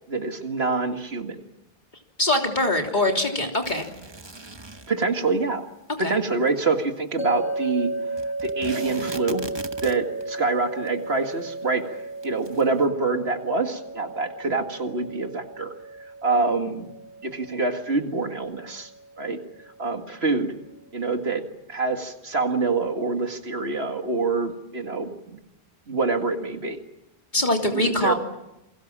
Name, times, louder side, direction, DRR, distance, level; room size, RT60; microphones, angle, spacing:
voice 1, 0.1-1.4 4.9-5.7 6.0-7.9 8.4-9.4 9.8-15.7 16.2-16.9 17.2-18.9 19.2-19.4 19.8-20.5 20.9-21.4 21.7-25.4 25.9-26.8 27.7-28.1, right 3 dB, 65° right, 5 dB, 2.3 m, -26 dB
voice 2, 2.2-3.9 6.0-6.2 27.3-28.1, left 1 dB, 40° left, 2 dB, 3.4 m, -23 dB
sound 1, 3.6-5.0 8.2-10.2 10.9-11.0 11.2-11.3 12.2-12.6, right 2 dB, 25° right, 1.2 m, -38 dB
sound 2, 7.2-20.3, right 2 dB, 80° left, 4.8 m, -35 dB
28.5 x 23.0 x 7.5 m, 0.92 s
omnidirectional pair, 1.1 m